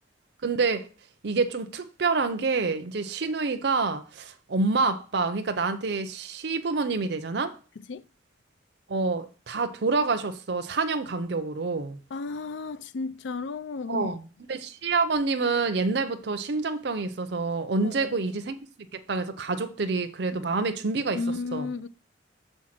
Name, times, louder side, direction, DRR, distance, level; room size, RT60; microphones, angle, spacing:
voice 1, 0.4-0.9 1.2-7.5 8.9-12.0 13.9-14.2 14.5-18.5 18.9-21.2 21.5-21.7, right 4 dB, 60° right, 0.6 m, -27 dB
voice 2, 12.1-14.2 17.8-18.4 20.3-20.4 21.1-21.9, left 3 dB, 75° left, 0.4 m, -33 dB
6.3 x 4.6 x 5.8 m
head